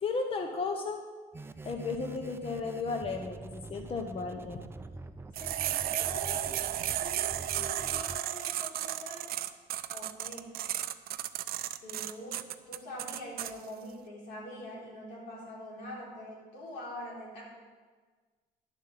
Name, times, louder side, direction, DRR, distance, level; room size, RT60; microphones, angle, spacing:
voice 1, 0.0-1.0 1.6-4.6, left 4 dB, 35° left, 4 dB, 0.8 m, -34 dB
sound 1, 1.3-8.2, right 3 dB, 15° right, 0.5 m, -45 dB
voice 2, 5.4-6.5 6.9-9.3 9.9-10.5 11.8-12.4 12.7-17.4, left 1 dB, 85° left, -4 dB, 3.8 m, -44 dB
sound 2, 5.4-13.5, right 13 dB, 65° right, 0.5 m, -34 dB
10.5 x 7.2 x 5.7 m, 1.5 s
cardioid pair, 110°, 17 cm